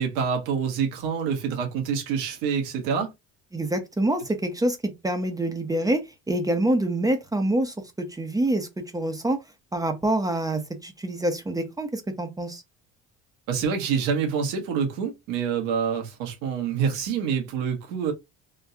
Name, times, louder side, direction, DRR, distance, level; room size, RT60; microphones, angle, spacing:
voice 1, 0.0-3.1 13.5-18.1, right 6 dB, 85° right, 1.4 m, -26 dB
voice 2, 3.5-6.0 6.3-9.4 9.7-12.6, right 1 dB, 10° right, 0.8 m, -26 dB
3.6 x 2.2 x 2.7 m
cardioid pair, 105°, 31 cm